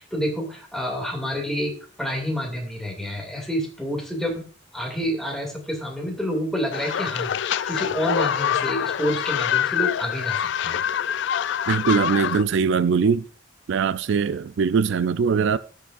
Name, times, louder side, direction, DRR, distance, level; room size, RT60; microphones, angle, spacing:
voice 1, 0.0-4.5 4.7-10.8, equal, ahead, 2.3 m, -28 dB
sound 1, 6.7-12.4, left 9 dB, 65° left, 0.3 m, -25 dB
voice 2, 11.7-13.2 13.7-15.6, right 5 dB, 65° right, 0.4 m, -21 dB
17.0 x 6.8 x 2.5 m
head